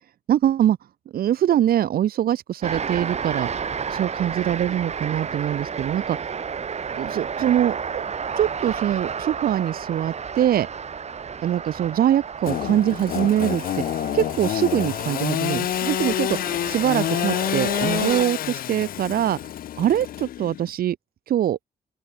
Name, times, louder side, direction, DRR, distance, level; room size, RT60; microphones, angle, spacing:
voice 1, 0.3-0.8 1.1-6.3 7.0-7.8 8.4-10.7 11.4-13.6 14.1-19.4 19.8-21.0 21.3-21.6, right 11 dB, 75° right, 0.8 m, -23 dB
sound 1, 2.6-18.3, right 6 dB, 45° right, 2.2 m, -32 dB
Engine / Sawing, 12.4-20.7, left 12 dB, 70° left, 0.5 m, -27 dB
open air
cardioid pair, 115°, 15 cm